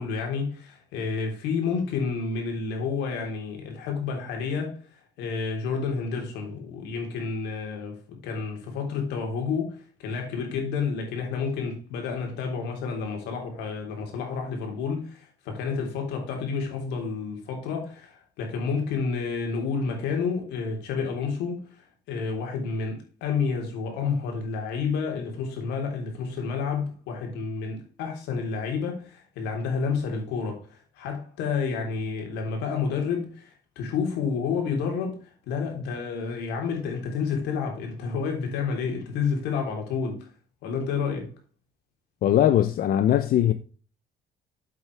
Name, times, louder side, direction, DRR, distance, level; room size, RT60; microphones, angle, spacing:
voice 1, 0.0-40.3 40.6-41.3, left 5 dB, 85° left, 3.6 m, -30 dB
voice 2, 42.2-43.5, left 11 dB, 60° left, 0.7 m, -20 dB
8.5 x 7.7 x 3.4 m
cardioid pair, 110°, 17 cm